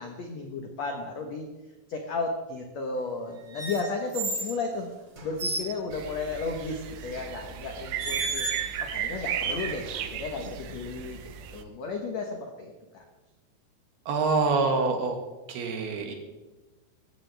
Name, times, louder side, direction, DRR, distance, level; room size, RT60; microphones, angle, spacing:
voice 1, 0.0-1.5 1.9-4.9 5.2-8.5 8.8-11.2 11.5-13.0, left 3 dB, 70° left, 3 dB, 1.6 m, -34 dB
sound 1, 3.5-4.6 5.2-5.7 7.1-7.3 8.0-8.8 9.3-10.1, right 3 dB, 35° right, 2.0 m, -33 dB
sound 2, 5.9-11.6, right 9 dB, 85° right, 1.8 m, -35 dB
voice 2, 14.1-15.2 15.5-16.1, right 4 dB, 70° right, 3 dB, 3.7 m, -25 dB
18.5 x 15.0 x 3.4 m, 1.2 s
omnidirectional pair, 4.9 m